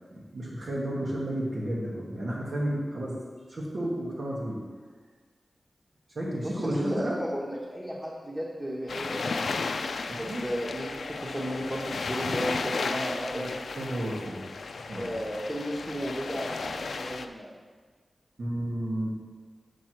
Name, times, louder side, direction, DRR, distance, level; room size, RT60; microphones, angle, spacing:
voice 1, 0.1-3.2 3.5-4.6 6.1-7.2 10.0-10.5 13.3-14.4 14.8-15.1 18.4-19.2, right 1 dB, 70° right, -5 dB, 1.3 m, -32 dB
voice 2, 6.4-9.4 10.2-13.4 14.9-17.5, equal, 15° right, -5 dB, 1.0 m, -34 dB
sound 1, 8.9-17.3, left 4 dB, 90° left, 0.4 m, -34 dB
6.8 x 6.1 x 4.6 m, 1.5 s
wide cardioid pair, 100°, 0 cm